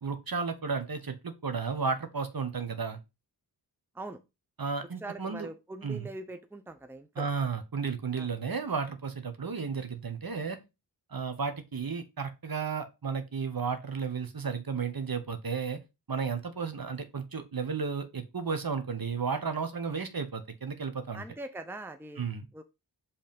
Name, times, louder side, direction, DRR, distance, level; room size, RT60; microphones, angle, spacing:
voice 1, 0.0-3.0 4.6-5.5 5.8-6.1 7.2-10.6 11.1-15.8 16.1-21.2 22.2-22.5, right 5 dB, 50° right, 8 dB, 1.2 m, -33 dB
voice 2, 5.0-7.3 8.2-8.3 21.1-22.2 22.5-22.6, right 2 dB, 5° right, 9 dB, 0.7 m, -42 dB
5.4 x 3.5 x 5.2 m, 0.25 s
cardioid pair, 40°, 44 cm